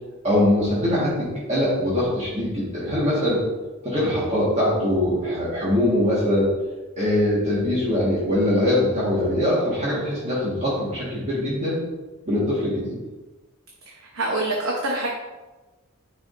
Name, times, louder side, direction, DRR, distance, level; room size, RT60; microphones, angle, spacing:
voice 1, 0.2-3.4 3.8-6.5 7.0-11.8 12.3-12.9, left 1 dB, 30° right, -8 dB, 1.6 m, -22 dB
voice 2, 14.1-15.1, right 2 dB, 70° right, -2 dB, 0.9 m, -25 dB
9.4 x 4.9 x 2.6 m, 1.2 s
head